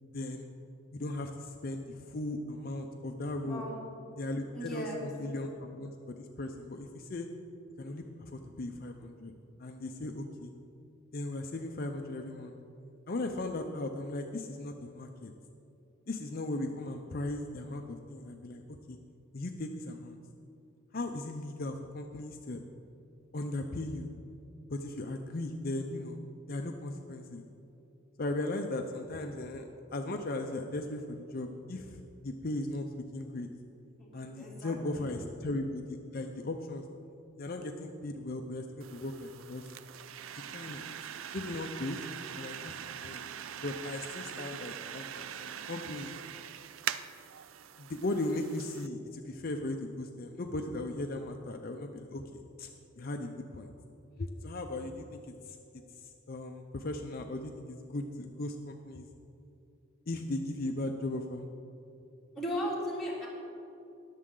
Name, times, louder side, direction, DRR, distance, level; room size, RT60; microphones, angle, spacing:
voice 1, 0.1-0.5 0.9-3.6 4.2-7.3 7.8-9.3 9.6-10.5 11.1-12.6 13.1-15.3 16.1-19.0 19.3-20.2 20.9-22.6 23.3-24.1 24.7-26.2 26.5-27.5 28.2-32.9 33.1-33.5 34.1-36.9 37.4-39.7 40.5-40.8 41.3-42.0 42.4-42.7 43.0-43.3 43.6-46.1 47.8-52.7 53.0-53.7 54.2-55.2 55.5-55.6 56.0-59.1 60.1-61.4, left 2 dB, 45° left, 4 dB, 0.6 m, -37 dB
voice 2, 3.4-3.8 4.5-5.0 34.0-35.2 62.3-63.3, equal, ahead, -7 dB, 2.9 m, -37 dB
sound 1, 38.8-48.9, right 9 dB, 80° right, 0.4 m, -42 dB
20.5 x 7.4 x 3.8 m, 2.7 s
head